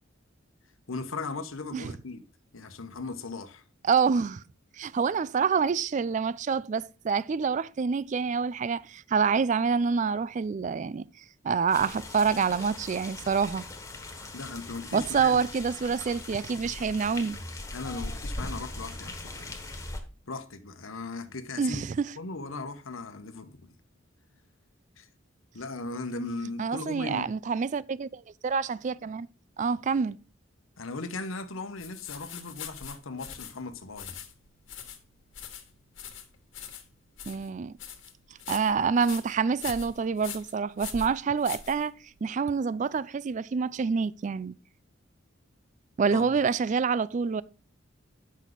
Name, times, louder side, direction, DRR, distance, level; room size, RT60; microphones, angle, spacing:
voice 1, 0.9-2.2 2.5-3.6 14.3-15.5 17.7-19.5 20.3-21.8 22.2-23.7 25.0-25.1 25.5-27.3 30.8-34.2 46.1-46.3, left 3 dB, 85° left, 1.0 m, -38 dB
voice 2, 3.8-4.4 4.8-11.0 11.4-13.6 14.9-17.4 21.6-22.0 26.6-29.3 29.6-30.2 37.3-37.7 38.5-41.9 42.2-44.5 46.0-47.4, right 5 dB, 35° right, 0.3 m, -27 dB
sound 1, 11.7-20.0, left 2 dB, 15° left, 1.2 m, -40 dB
sound 2, 31.8-42.3, left 8 dB, 70° left, 1.6 m, -43 dB
9.2 x 6.3 x 4.0 m
head